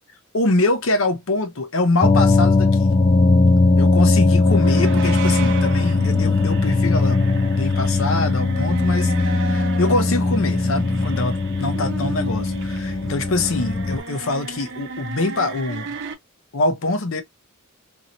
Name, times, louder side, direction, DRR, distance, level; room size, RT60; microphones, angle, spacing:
voice 1, 0.3-2.9 3.8-16.0 16.5-17.2, left 2 dB, 65° left, 0.7 m, -24 dB
sound 1, 2.0-14.0, left 3 dB, 25° left, 0.4 m, -19 dB
sound 2, 4.4-16.1, right 4 dB, 55° right, 0.8 m, -34 dB
2.9 x 2.8 x 2.6 m
head